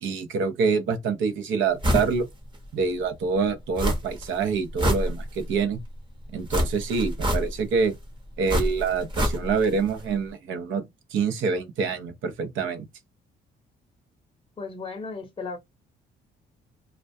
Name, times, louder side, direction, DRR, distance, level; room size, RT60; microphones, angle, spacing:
voice 1, 0.0-2.3 2.7-5.8 6.3-8.0 8.4-12.9, right 5 dB, 80° right, 0.6 m, -26 dB
sound 1, 1.8-2.1 2.5-2.6 3.8-4.3 4.6-5.6 6.5-7.8 8.5-9.7 10.0-10.1, equal, 25° right, 0.8 m, -26 dB
voice 2, 14.6-15.6, left 4 dB, 25° left, 0.6 m, -35 dB
2.3 x 2.1 x 2.5 m
cardioid pair, 90°, 20 cm